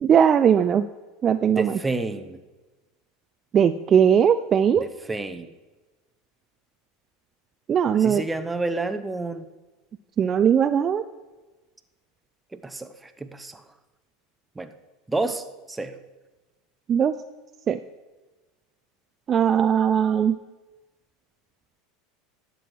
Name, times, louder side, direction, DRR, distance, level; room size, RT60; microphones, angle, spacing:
voice 1, 0.0-0.9 1.2-1.7 3.5-4.8 7.7-8.2 10.2-11.0 16.9-17.1 17.7-17.8 19.3-20.4, right 8 dB, 35° right, 11 dB, 0.4 m, -19 dB
voice 2, 1.5-2.4 4.8-5.5 8.0-9.5 12.5-13.6 14.6-14.7 15.1-16.0, right 3 dB, 10° right, 8 dB, 0.8 m, -30 dB
11.0 x 7.7 x 4.6 m, 1.2 s
supercardioid pair, 110°, 0 cm